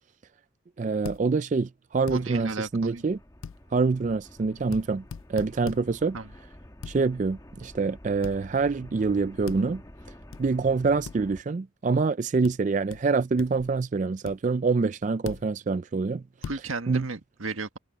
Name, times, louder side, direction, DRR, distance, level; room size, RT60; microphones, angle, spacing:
voice 1, 0.8-3.2 3.7-5.0 5.3-6.2 6.9-9.8 10.4-16.2 16.9-17.0, right 4 dB, 35° right, 0.3 m, -26 dB
sound 1, 1.0-1.2 2.1-2.2 3.4-3.6 4.7-4.8 5.1-5.8 6.8-7.0 8.2-8.4 9.5-9.6 10.3-10.4 11.0-11.2 12.4-12.5 12.9-13.0 13.4-13.7 14.2-14.4 15.2-15.4 16.4-16.6, left 6 dB, 80° left, 0.4 m, -38 dB
sound 2, 1.9-11.4, left 1 dB, 15° left, 1.3 m, -49 dB
voice 2, 2.1-3.0 6.1-6.3 16.4-17.8, right 3 dB, 90° right, 1.6 m, -34 dB
head